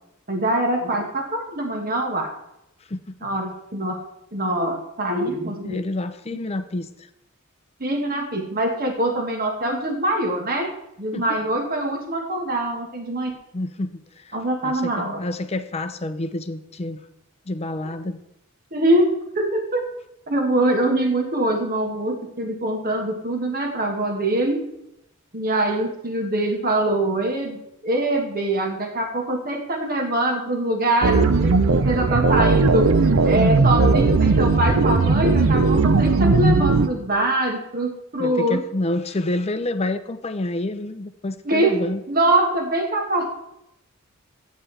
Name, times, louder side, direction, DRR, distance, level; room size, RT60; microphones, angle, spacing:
voice 1, 0.3-2.3 3.2-4.0 4.3-5.8 7.8-10.7 11.0-13.3 14.3-15.2 18.7-19.8 20.3-24.6 25.3-32.9 33.3-38.6 41.4-41.7 42.1-43.4, right 1 dB, 45° right, 2 dB, 1.4 m, -23 dB
voice 2, 5.6-7.1 11.1-11.4 13.5-14.4 14.6-17.0 17.5-18.2 38.2-42.0, left 2 dB, 30° left, 10 dB, 0.6 m, -28 dB
sound 1, 31.0-36.9, right 3 dB, 65° right, 0.6 m, -17 dB
12.5 x 9.1 x 3.3 m, 0.84 s
head